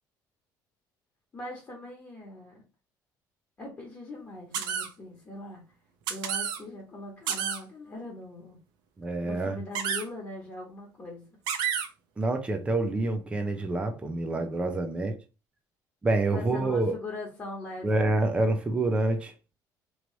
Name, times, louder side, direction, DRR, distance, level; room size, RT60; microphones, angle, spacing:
voice 1, 1.3-2.6 3.6-5.6 6.1-8.6 9.2-11.3 16.3-18.1, left 2 dB, 25° left, 1.4 m, -41 dB
sound 1, 4.5-4.9 6.1-6.6 7.3-7.6 9.8-10.0 11.5-11.9, right 8 dB, 80° right, 0.7 m, -29 dB
voice 2, 9.0-9.6 12.2-15.2 16.0-16.9 17.8-19.3, right 2 dB, 15° right, 0.6 m, -27 dB
3.2 x 3.1 x 3.9 m
cardioid pair, 155°, 7 cm